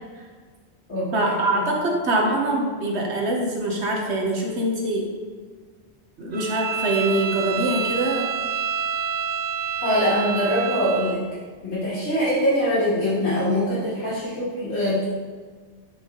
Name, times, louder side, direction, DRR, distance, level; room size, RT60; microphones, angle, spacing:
voice 1, 1.1-5.1 6.2-8.3, right 1 dB, 75° right, -1 dB, 1.4 m, -24 dB
Bowed string instrument, 6.3-11.2, right 7 dB, 50° right, 0.6 m, -28 dB
voice 2, 9.8-11.2 11.6-15.0, equal, 80° left, -10 dB, 2.5 m, -23 dB
9.2 x 3.5 x 3.9 m, 1.5 s
omnidirectional pair, 1.1 m